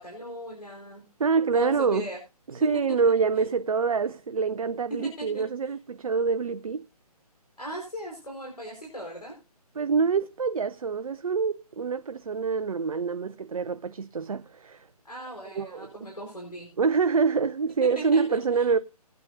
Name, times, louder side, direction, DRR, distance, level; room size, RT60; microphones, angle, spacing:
voice 1, 0.0-1.0 1.5-2.2 2.6-2.7 3.0-3.5 4.9-5.7 7.6-9.3 15.0-16.7 17.9-18.7, equal, 80° left, 4.5 m, -38 dB
voice 2, 1.2-2.1 2.5-6.9 9.8-14.9 15.5-15.9 16.8-18.8, right 5 dB, 60° right, 0.5 m, -26 dB
19.0 x 9.2 x 2.6 m
figure-of-eight pair, 145°, 20 cm